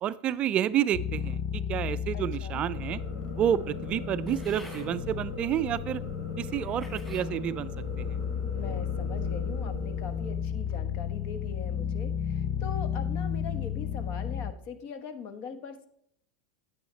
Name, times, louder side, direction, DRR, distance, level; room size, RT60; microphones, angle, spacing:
voice 1, 0.0-3.0 3.3-6.0 6.4-7.7 8.0-8.1, right 10 dB, 40° right, 16 dB, 0.3 m, -29 dB
sound 1, 0.9-14.5, left 8 dB, 35° left, 0.5 m, -33 dB
voice 2, 2.1-2.6 8.5-15.9, left 6 dB, 50° left, 10 dB, 1.1 m, -41 dB
sound 2, 2.7-10.3, left 2 dB, 75° left, 2.8 m, -41 dB
sound 3, 4.3-4.9 5.7-5.8 6.5-7.3 7.9-8.3, left 1 dB, 15° left, 3.9 m, -50 dB
9.4 x 8.4 x 3.2 m, 0.68 s
hypercardioid pair, 90°, 3 cm